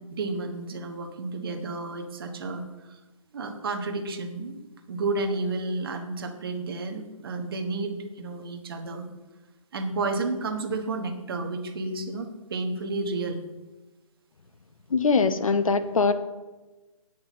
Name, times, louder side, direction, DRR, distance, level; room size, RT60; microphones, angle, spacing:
voice 1, 0.1-3.0 3.3-9.1 9.7-13.4, right 3 dB, 40° right, 5 dB, 1.2 m, -31 dB
voice 2, 14.9-16.1, left 4 dB, 70° left, 11 dB, 0.9 m, -22 dB
9.1 x 6.2 x 6.2 m, 1.2 s
hypercardioid pair, 160°, 18 cm